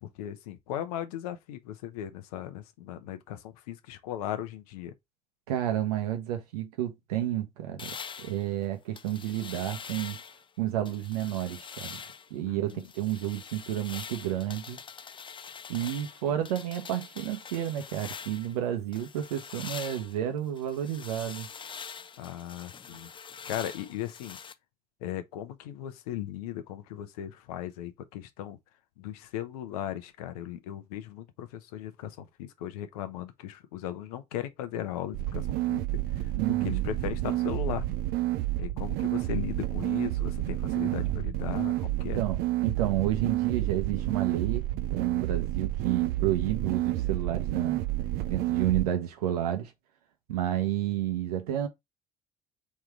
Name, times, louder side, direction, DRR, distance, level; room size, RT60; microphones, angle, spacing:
voice 1, 0.0-4.9 12.4-12.9 22.2-23.1 23.4-24.4 25.0-28.6 29.0-35.8 36.2-37.9 38.6-42.2, left 11 dB, 75° left, 0.7 m, -37 dB
voice 2, 5.5-10.2 10.6-12.0 12.3-14.9 15.7-21.5 36.4-36.8 40.8-41.3 42.1-47.8 48.3-49.7 50.3-51.7, right 12 dB, 80° right, 0.9 m, -31 dB
sound 1, 7.8-10.5 10.9-12.3 12.7-18.6 18.9-24.5, left 6 dB, 25° left, 0.5 m, -44 dB
sound 2, 35.1-48.8, right 16 dB, 65° right, 0.5 m, -30 dB
3.7 x 3.2 x 4.5 m
hypercardioid pair, 60°, 19 cm